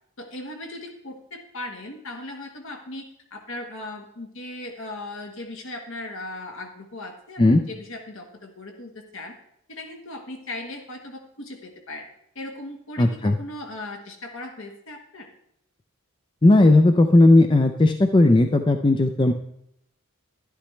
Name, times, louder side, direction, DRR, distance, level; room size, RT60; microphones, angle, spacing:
voice 1, 0.2-9.3 9.7-12.1 12.3-15.3, left 2 dB, 60° left, 3 dB, 1.4 m, -38 dB
voice 2, 13.0-13.4 16.4-19.3, left 2 dB, 20° left, 6 dB, 0.4 m, -16 dB
11.5 x 11.5 x 3.2 m, 0.74 s
head